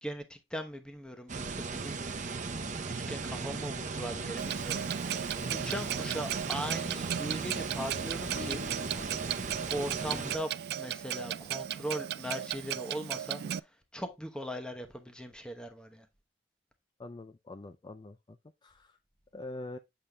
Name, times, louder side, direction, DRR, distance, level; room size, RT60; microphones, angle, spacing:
voice 1, 0.0-2.1 2.6-4.8 5.5-8.6 9.7-16.1, equal, 5° left, 0.9 m, -39 dB
sound 1, 1.3-10.4, right 4 dB, 45° right, 0.7 m, -37 dB
Clock, 4.4-13.6, right 10 dB, 60° right, 0.3 m, -36 dB
sound 2, 8.3-10.8, left 10 dB, 75° left, 4.0 m, -50 dB
voice 2, 17.0-18.4 18.6-19.0 19.3-19.8, left 2 dB, 25° left, 0.4 m, -44 dB
7.6 x 6.7 x 2.3 m
head